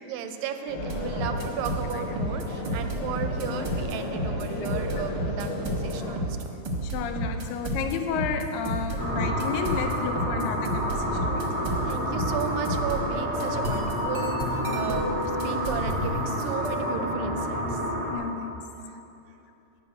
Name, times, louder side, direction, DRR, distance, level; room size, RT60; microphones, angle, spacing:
voice 1, 0.0-6.5 11.8-17.8 18.8-18.9, right 7 dB, 80° right, 7 dB, 2.3 m, -34 dB
sound 1, 0.7-6.2, left 3 dB, 55° left, 2.5 m, -34 dB
sound 2, 0.8-16.9, right 1 dB, 60° right, 1.1 m, -32 dB
voice 2, 4.5-5.0 6.8-11.7 15.6-15.7 17.6-17.8 18.1-18.6, left 7 dB, 85° left, 6 dB, 2.4 m, -32 dB
sound 3, 9.0-18.1, equal, 15° right, 0.9 m, -29 dB
12.5 x 5.3 x 8.9 m, 2.8 s
omnidirectional pair, 4.0 m